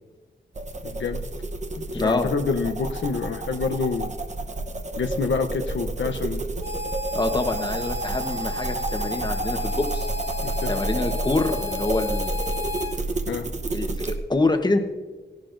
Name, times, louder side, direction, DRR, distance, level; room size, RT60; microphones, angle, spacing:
sound 1, 0.5-14.2, right 2 dB, 40° right, 0.9 m, -30 dB
voice 1, 0.8-1.2 1.9-4.1 5.0-6.4 10.4-10.7 13.3-13.5, left 4 dB, 85° left, 5 dB, 0.7 m, -27 dB
voice 2, 1.9-2.3 7.1-10.1 10.7-12.4 13.7-14.8, left 2 dB, 25° left, 6 dB, 1.0 m, -26 dB
Harmonica, 6.6-13.0, left 3 dB, 55° right, 2.5 m, -33 dB
17.5 x 12.0 x 2.6 m, 1.3 s
wide cardioid pair, 115°, 19 cm